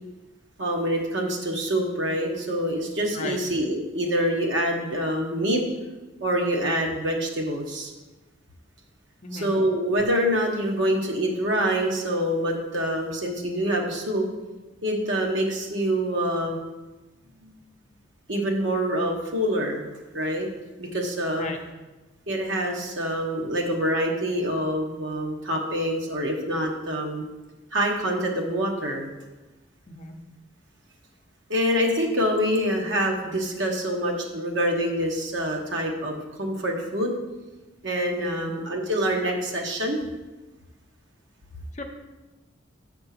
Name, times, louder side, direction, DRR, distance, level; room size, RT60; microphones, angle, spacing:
voice 1, 0.6-5.6 6.2-7.9 9.3-14.3 14.8-16.6 17.4-17.5 18.3-19.8 20.1-20.5 20.8-21.5 22.3-27.3 27.7-29.0 31.5-37.1 37.8-40.0, equal, 65° right, 1 dB, 1.3 m, -26 dB
voice 2, 3.1-3.4 9.2-9.5 21.3-21.6 29.9-30.1 38.3-38.5 41.7-41.8, left 2 dB, 35° left, 4 dB, 0.7 m, -35 dB
7.6 x 4.4 x 5.9 m, 1.1 s
head